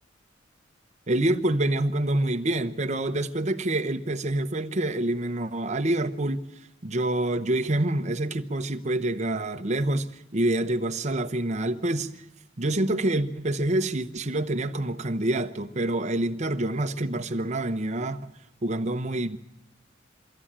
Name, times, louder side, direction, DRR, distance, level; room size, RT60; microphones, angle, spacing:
voice 1, 1.1-6.4 6.8-12.1 12.6-18.3 18.6-19.4, right 1 dB, 35° right, 0.9 m, -27 dB
23.5 x 14.5 x 8.7 m
head